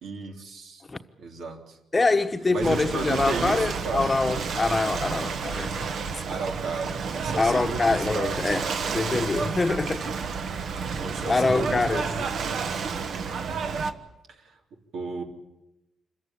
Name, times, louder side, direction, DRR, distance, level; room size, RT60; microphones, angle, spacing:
voice 1, 0.0-0.8 1.2-1.8 2.5-4.1 6.2-8.4 11.0-12.8 14.3-14.6 14.9-15.2, right 3 dB, 80° right, 3.5 m, -34 dB
voice 2, 1.9-5.8 6.1-6.2 7.4-10.1 11.3-12.1, left 3 dB, 25° left, 1.1 m, -25 dB
Ocean / Boat Water vehicle, 2.6-13.9, right 5 dB, 65° right, 1.3 m, -30 dB
26.5 x 15.0 x 10.0 m
cardioid pair, 105°, 0 cm